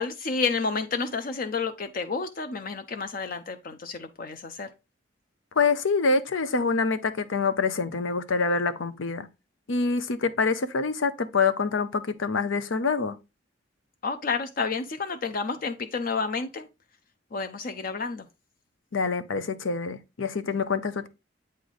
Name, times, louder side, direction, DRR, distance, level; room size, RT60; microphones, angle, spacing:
voice 1, 0.0-4.7 14.0-16.7 17.3-18.3, left 4 dB, 45° left, 0.5 m, -30 dB
voice 2, 5.6-9.3 9.7-13.2 18.9-21.1, left 4 dB, 90° left, 0.7 m, -26 dB
8.2 x 3.3 x 3.9 m
head